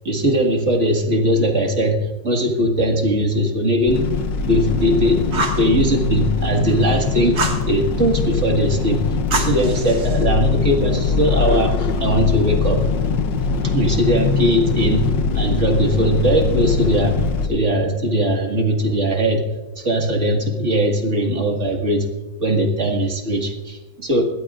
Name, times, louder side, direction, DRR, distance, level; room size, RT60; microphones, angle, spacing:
voice 1, 0.0-4.0 4.4-7.4 7.7-9.0 9.3-12.8 13.6-17.1 17.5-22.1 22.4-24.2, equal, 40° right, 2 dB, 2.2 m, -20 dB
sound 1, 3.9-17.5, left 5 dB, 85° left, 1.6 m, -22 dB
Fire, 5.3-5.7 7.4-7.7 9.3-10.2, right 3 dB, 65° right, 2.5 m, -25 dB
21.5 x 17.0 x 2.5 m, 1.2 s
omnidirectional pair, 1.9 m